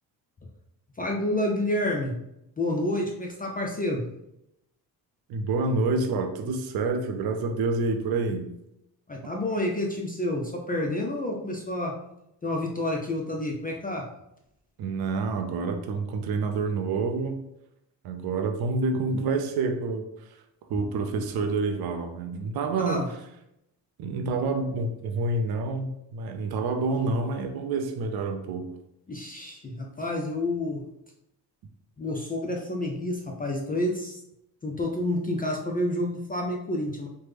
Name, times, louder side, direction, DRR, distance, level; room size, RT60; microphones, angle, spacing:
voice 1, 1.0-2.1 2.6-4.1 9.1-12.0 12.4-14.1 22.8-23.1 29.1-30.8 32.0-34.2 34.6-37.1, left 1 dB, 20° left, 0 dB, 0.4 m, -29 dB
voice 2, 5.3-8.5 14.8-17.4 18.0-20.1 20.7-23.1 24.0-28.7, right 3 dB, 60° right, 5 dB, 0.5 m, -28 dB
3.2 x 2.1 x 3.2 m, 0.83 s
cardioid pair, 90°, 42 cm